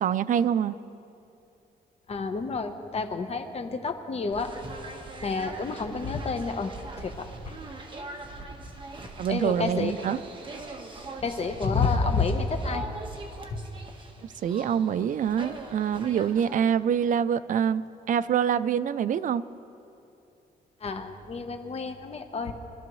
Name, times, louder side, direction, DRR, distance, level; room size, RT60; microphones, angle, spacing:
voice 1, 0.0-0.8 9.2-10.2 14.4-17.8 18.1-19.4, right 8 dB, 55° right, 14 dB, 0.4 m, -25 dB
voice 2, 2.1-4.5 5.2-7.5 9.3-9.9 11.2-12.8 13.5-13.6 20.8-22.5, left 4 dB, 40° left, 7 dB, 1.0 m, -29 dB
sound 1, 4.3-16.5, right 2 dB, 30° right, 1.4 m, -42 dB
24.0 x 13.0 x 3.1 m, 2.7 s
cardioid pair, 120°, 16 cm